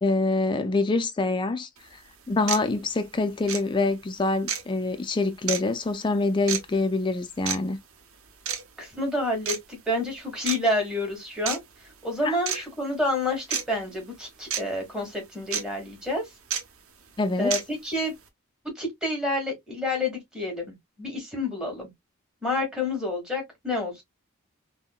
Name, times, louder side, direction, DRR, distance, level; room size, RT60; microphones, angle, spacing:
voice 1, 0.0-1.7 2.3-7.8 12.2-12.3 17.2-17.5, left 3 dB, 20° left, 0.3 m, -25 dB
sound 1, 1.8-1.9 2.5-2.6 3.5-3.6 4.5-4.6 5.5-5.6 6.5-6.6 7.5-7.6 8.5-8.6 9.5-9.6 10.5-10.6 11.5-11.6 12.5-12.6 13.5-13.6 14.5-14.6 15.5-15.6 16.5-16.6 17.5-17.6, right 8 dB, 85° right, 0.7 m, -28 dB
voice 2, 8.8-16.2 17.4-18.1 18.7-21.9 22.4-24.0, left 2 dB, 5° right, 1.4 m, -29 dB
3.6 x 2.1 x 2.2 m
head